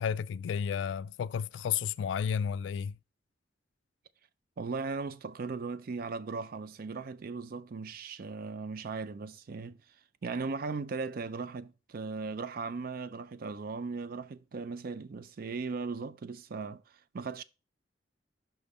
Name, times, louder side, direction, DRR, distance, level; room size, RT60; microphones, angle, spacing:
voice 1, 0.0-3.0, left 7 dB, 80° left, 0.3 m, -32 dB
voice 2, 4.6-9.8 10.2-17.4, right 4 dB, 55° right, 0.4 m, -38 dB
5.8 x 5.3 x 4.0 m
head